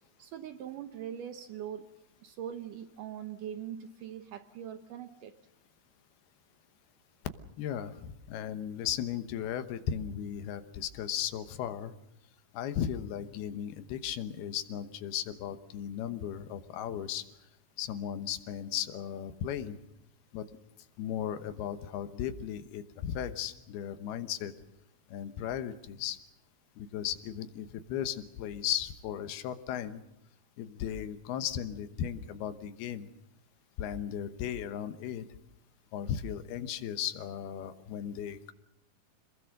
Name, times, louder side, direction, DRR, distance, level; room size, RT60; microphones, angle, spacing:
voice 1, 0.2-1.9 2.2-5.3, right 9 dB, 70° right, 9 dB, 2.1 m, -41 dB
voice 2, 7.6-11.9 12.5-17.2 17.8-19.8 20.3-20.4 21.0-24.5 25.1-26.2 26.8-30.0 30.6-33.1 33.8-35.3 35.9-38.5, left 9 dB, 75° left, 11 dB, 3.0 m, -36 dB
26.5 x 20.5 x 6.5 m, 0.89 s
omnidirectional pair, 4.6 m